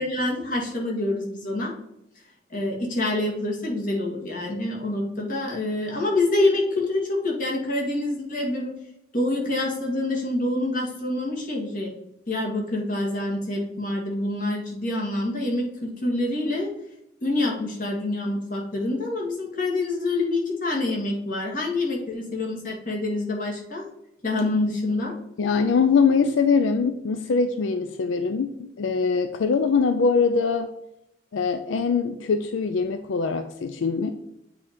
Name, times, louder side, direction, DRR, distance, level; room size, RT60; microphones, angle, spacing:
voice 1, 0.0-1.7 2.5-8.7 9.1-11.9 12.3-16.7 17.2-23.8 24.2-25.1, left 2 dB, 45° left, -2 dB, 1.8 m, -26 dB
voice 2, 25.4-30.7 31.3-34.1, left 5 dB, 85° left, 8 dB, 0.4 m, -22 dB
8.4 x 2.9 x 5.0 m, 0.84 s
head